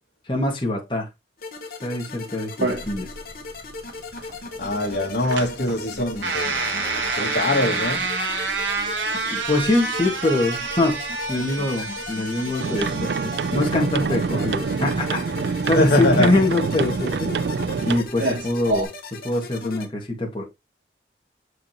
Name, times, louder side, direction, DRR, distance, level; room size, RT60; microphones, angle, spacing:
voice 1, 0.3-1.1 1.8-3.1 9.3-11.0 11.3-15.2 15.7-17.3 17.8-18.9 19.2-20.4, left 2 dB, 25° left, 1.8 m, -23 dB
sound 1, 1.4-19.9, left 3 dB, 50° left, 1.2 m, -38 dB
sound 2, 2.6-18.8, right 3 dB, 85° right, 1.7 m, -29 dB
voice 2, 4.6-8.1 15.8-16.4, left 1 dB, 70° left, 2.0 m, -23 dB
sound 3, 12.6-18.0, right 5 dB, 65° right, 0.4 m, -26 dB
7.0 x 5.0 x 2.9 m
head